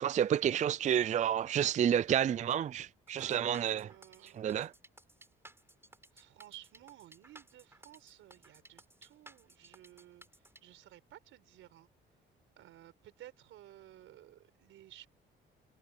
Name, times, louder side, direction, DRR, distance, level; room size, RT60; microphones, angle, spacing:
voice 1, 0.0-3.9 4.2-4.7, right 9 dB, 40° right, 0.4 m, -30 dB
sound 1, 3.1-10.6, right 1 dB, 10° right, 5.0 m, -57 dB
voice 2, 3.2-4.5 6.1-11.9 12.6-15.1, right 13 dB, 85° right, 4.6 m, -56 dB
cardioid pair, 90°, 20 cm